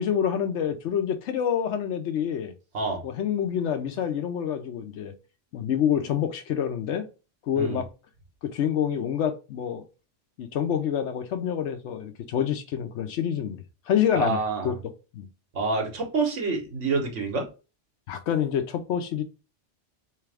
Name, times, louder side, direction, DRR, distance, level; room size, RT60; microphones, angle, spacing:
voice 1, 0.0-2.5 3.0-5.1 5.5-7.0 7.5-7.9 8.4-9.8 10.4-14.7 15.1-15.3 18.1-19.2, left 8 dB, 75° left, 1.0 m, -27 dB
voice 2, 14.1-14.8 15.5-17.5, right 3 dB, 75° right, 1.5 m, -27 dB
3.5 x 3.3 x 3.4 m
omnidirectional pair, 1.2 m